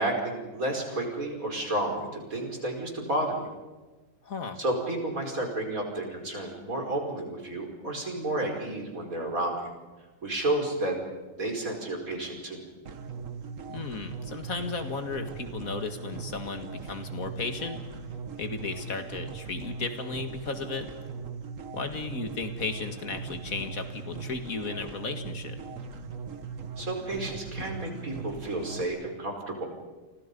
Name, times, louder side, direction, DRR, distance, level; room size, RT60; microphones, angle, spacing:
voice 1, 0.0-3.4 4.6-9.5 10.2-11.0 11.4-12.6 26.8-29.7, right 1 dB, 85° right, 2 dB, 5.2 m, -31 dB
voice 2, 4.2-4.6 13.7-17.8 18.4-20.9 21.7-25.6, left 4 dB, 80° left, 7 dB, 2.5 m, -35 dB
sound 1, 12.9-28.9, right 5 dB, 65° right, 1.7 m, -39 dB
30.0 x 24.5 x 5.4 m, 1.2 s
omnidirectional pair, 1.4 m